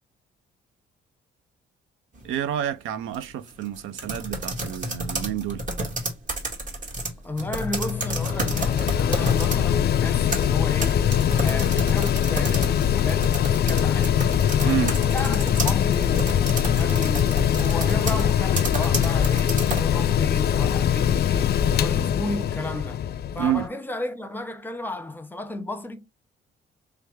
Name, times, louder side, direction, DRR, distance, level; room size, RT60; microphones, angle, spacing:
sound 1, 2.1-2.5 3.1-9.6 10.1-19.9, right 1 dB, 40° right, 1.7 m, -31 dB
voice 1, 2.2-5.6 14.6-15.0 23.4-23.7, right 10 dB, 90° right, 0.6 m, -28 dB
voice 2, 7.2-11.1 11.4-14.2 14.6-14.8 15.1-23.0 23.3-26.1, left 2 dB, 10° left, 0.8 m, -33 dB
Mechanical fan, 7.4-23.7, left 9 dB, 55° left, 0.4 m, -22 dB
sound 2, 11.3-18.0, right 1 dB, 15° right, 1.5 m, -43 dB
3.4 x 3.3 x 3.1 m
cardioid pair, 90°, 20 cm